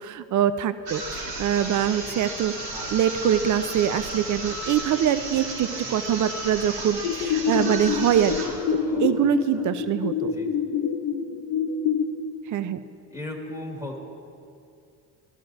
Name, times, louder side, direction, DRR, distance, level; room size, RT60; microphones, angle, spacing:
voice 1, 0.0-2.5 2.9-8.6 9.0-10.3 12.5-12.8, right 10 dB, 45° right, 13 dB, 0.6 m, -24 dB
sound 1, 0.8-8.6, right 2 dB, 60° right, 2.9 m, -34 dB
sound 2, 7.0-12.0, left 7 dB, 70° left, 0.9 m, -27 dB
voice 2, 8.7-9.3 9.5-9.8 10.2-10.5 13.1-14.0, left 1 dB, 10° right, -1 dB, 1.8 m, -37 dB
13.5 x 12.5 x 2.6 m, 2.5 s
supercardioid pair, 70°, 42 cm